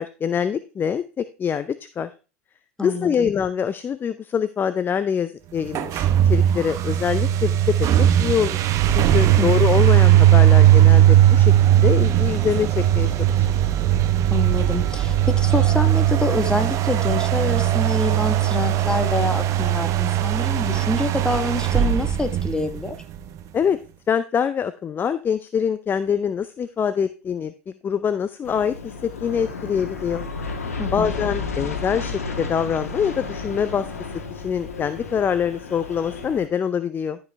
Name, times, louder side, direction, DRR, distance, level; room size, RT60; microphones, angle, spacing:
voice 1, 0.0-2.1 2.8-8.6 8.9-13.6 23.5-23.8 24.1-30.2 30.9-33.9 34.3-37.2, left 7 dB, 25° left, 13 dB, 0.5 m, -24 dB
voice 2, 2.8-3.3 9.4-9.5 14.3-23.0 30.8-31.1, left 2 dB, 10° left, 8 dB, 1.4 m, -26 dB
sound 1, 5.7-23.2, right 12 dB, 45° right, 0.9 m, -18 dB
Aircraft, 28.4-36.5, left 4 dB, 85° left, 1.4 m, -32 dB
12.5 x 5.3 x 3.4 m, 0.33 s
hypercardioid pair, 85°, 8 cm